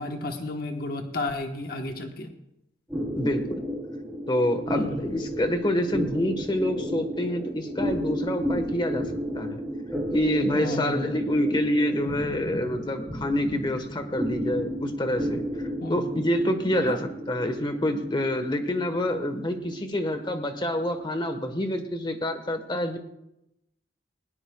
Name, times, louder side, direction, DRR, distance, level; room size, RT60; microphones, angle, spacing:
voice 1, 0.0-2.3 4.7-5.2 10.5-11.1 15.8-16.1 16.8-17.0, left 2 dB, 55° left, 3 dB, 1.2 m, -32 dB
sound 1, 2.9-21.7, equal, 5° right, 3.0 m, -33 dB
voice 2, 3.2-3.6 4.3-9.1 9.3-9.6 10.1-15.4 15.9-23.0, left 1 dB, 25° left, 7 dB, 1.3 m, -27 dB
20.0 x 18.0 x 2.3 m, 0.85 s
head